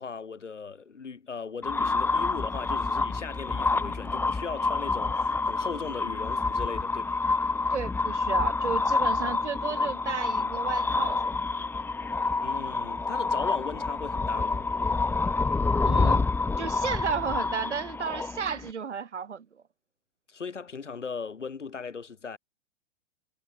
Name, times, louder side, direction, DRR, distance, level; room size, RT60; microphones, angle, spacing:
voice 1, 0.0-7.2 12.4-14.7 20.3-22.4, left 5 dB, 75° left, 2.0 m, -38 dB
sound 1, 1.6-18.7, left 3 dB, 5° left, 1.3 m, -28 dB
voice 2, 7.7-11.6 15.8-16.3 16.6-19.6, right 6 dB, 70° right, 2.0 m, -33 dB
figure-of-eight pair, 110°, 36 cm